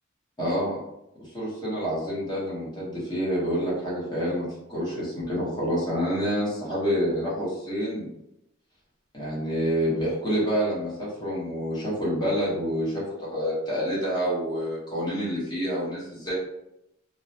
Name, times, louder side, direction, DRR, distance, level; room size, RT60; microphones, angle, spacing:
voice 1, 0.4-0.8 1.2-8.1 9.1-16.3, equal, 20° left, -7 dB, 0.9 m, -28 dB
2.3 x 2.0 x 2.6 m, 0.84 s
head